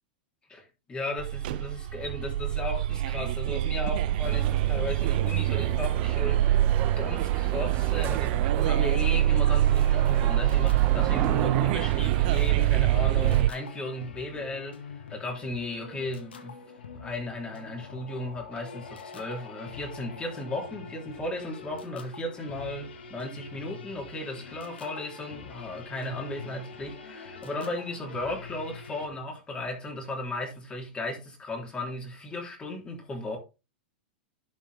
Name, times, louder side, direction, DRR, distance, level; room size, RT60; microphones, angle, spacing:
voice 1, 0.5-16.6 16.9-33.4, left 2 dB, 20° left, 3.3 m, -36 dB
sound 1, 1.2-13.5, right 13 dB, 60° right, 0.3 m, -25 dB
sound 2, 4.2-13.4, right 9 dB, 40° right, 1.5 m, -36 dB
sound 3, 9.7-29.1, left 5 dB, 90° left, 1.8 m, -45 dB
11.5 x 5.6 x 3.5 m
hypercardioid pair, 120°, 6 cm